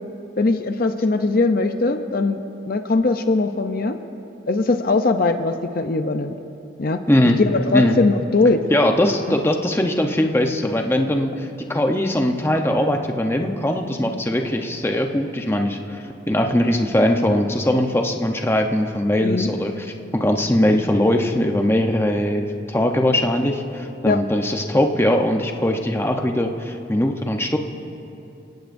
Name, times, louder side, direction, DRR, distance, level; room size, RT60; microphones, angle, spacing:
voice 1, 0.4-2.4 2.7-4.0 4.5-6.3 6.8-7.0 7.4-8.6 9.3-9.4 19.2-19.5 24.0-24.2, left 3 dB, 45° left, 7 dB, 0.6 m, -20 dB
voice 2, 7.1-7.4 7.7-8.0 8.7-19.9 20.1-27.6, left 1 dB, 10° left, 3 dB, 0.8 m, -20 dB
29.0 x 17.5 x 2.6 m, 2.8 s
head